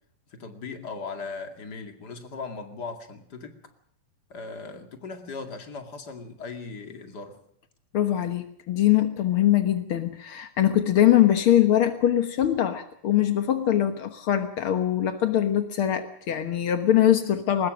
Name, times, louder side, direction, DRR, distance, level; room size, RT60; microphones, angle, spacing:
voice 1, 0.3-3.6 4.3-7.4, left 4 dB, 35° left, 6 dB, 2.2 m, -38 dB
voice 2, 7.9-17.7, left 11 dB, 70° left, 8 dB, 1.2 m, -22 dB
22.5 x 20.0 x 6.4 m, 0.68 s
omnidirectional pair, 4.2 m